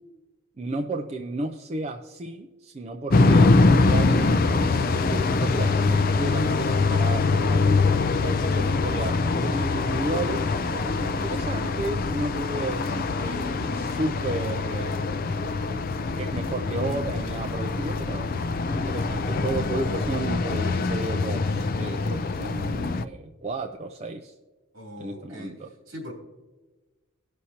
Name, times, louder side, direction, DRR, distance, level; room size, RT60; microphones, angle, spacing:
voice 1, 0.6-7.8 8.1-15.8 16.2-18.3 18.7-24.3 25.0-25.7, right 2 dB, 30° right, 4 dB, 0.4 m, -33 dB
sound 1, 3.1-23.0, left 3 dB, 40° left, 0.4 m, -24 dB
voice 2, 24.7-26.1, left 1 dB, 60° right, -1 dB, 3.1 m, -41 dB
18.5 x 6.3 x 2.8 m, 1.2 s
head